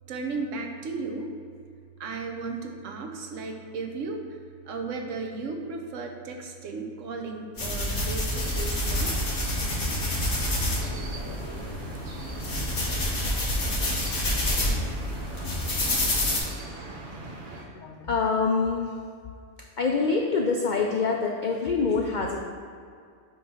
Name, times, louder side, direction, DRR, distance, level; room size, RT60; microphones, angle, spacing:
voice 1, 0.1-1.3 2.0-4.2 4.7-9.1, right 4 dB, 70° right, 3 dB, 1.0 m, -35 dB
sound 1, 7.6-16.4, left 1 dB, 55° left, 1.5 m, -28 dB
sound 2, 8.4-17.6, right 2 dB, 45° right, 0.9 m, -41 dB
voice 2, 17.6-18.9 19.8-22.4, left 4 dB, 80° left, 1 dB, 0.4 m, -25 dB
7.2 x 3.1 x 5.5 m, 2.2 s
omnidirectional pair, 1.4 m